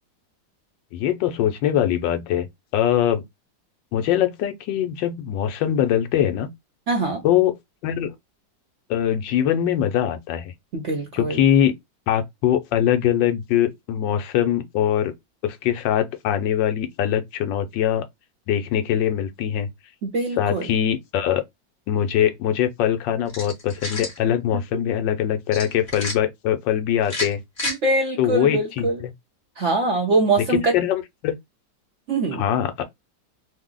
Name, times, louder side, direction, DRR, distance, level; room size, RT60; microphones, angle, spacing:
voice 1, 0.9-2.5 2.7-3.2 3.9-6.5 7.2-7.5 7.8-8.1 8.9-10.5 11.1-11.7 12.1-15.1 15.4-18.0 18.5-19.7 20.4-21.4 21.9-27.4 28.2-29.1 30.7-31.4 32.3-32.8, left 10 dB, 90° left, 1.3 m, -22 dB
voice 2, 6.9-7.2 10.7-11.4 20.0-20.7 27.6-29.0 29.6-30.7 32.1-32.4, right 2 dB, 65° right, 0.7 m, -23 dB
sound 1, 23.3-24.2 25.5-26.2 27.0-27.8, left 2 dB, 40° left, 1.3 m, -30 dB
3.1 x 2.0 x 3.7 m
omnidirectional pair, 2.0 m